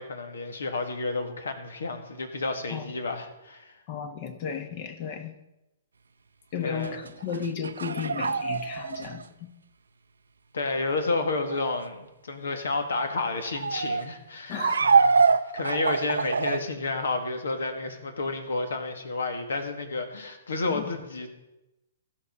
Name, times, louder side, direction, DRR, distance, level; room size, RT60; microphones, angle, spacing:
voice 1, 0.0-3.8 6.6-7.0 10.5-21.3, left 3 dB, 80° left, 6 dB, 1.8 m, -31 dB
voice 2, 3.9-5.3 6.5-9.5 14.5-14.9 20.7-20.9, left 7 dB, 45° left, 8 dB, 1.2 m, -34 dB
sound 1, 6.8-9.2 11.5-11.8 13.5-14.0 14.6-16.6, right 5 dB, 90° right, 0.5 m, -24 dB
15.5 x 5.6 x 5.5 m, 0.97 s
hypercardioid pair, 130°, 0 cm